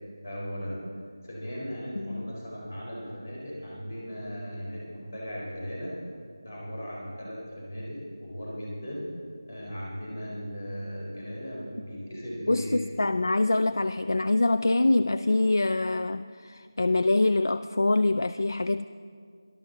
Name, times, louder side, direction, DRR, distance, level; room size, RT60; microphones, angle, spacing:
voice 1, 0.1-0.8 1.2-6.0 6.4-9.1 9.5-12.8, equal, 35° left, -4 dB, 4.2 m, -37 dB
voice 2, 12.5-18.9, left 2 dB, 60° left, 11 dB, 0.3 m, -25 dB
18.0 x 12.5 x 4.0 m, 2.2 s
figure-of-eight pair, 175°, 2 cm